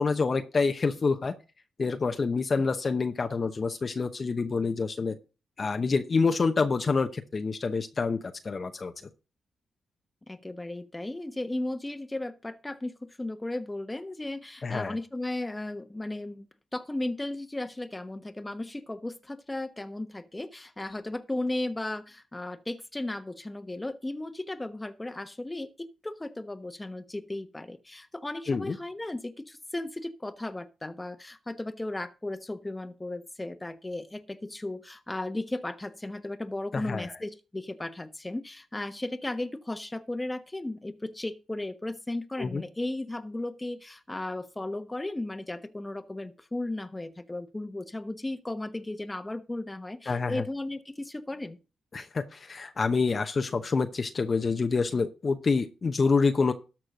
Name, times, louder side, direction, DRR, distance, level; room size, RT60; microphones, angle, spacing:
voice 1, 0.0-1.3 1.8-5.2 5.6-8.9 14.6-15.0 28.5-28.8 36.7-37.1 42.4-42.6 50.1-50.4 51.9-56.5, left 4 dB, 45° left, 0.9 m, -27 dB
voice 2, 10.3-16.4 16.7-51.6, left 2 dB, 15° left, 1.1 m, -35 dB
13.0 x 4.5 x 6.5 m
cardioid pair, 65°, 0 cm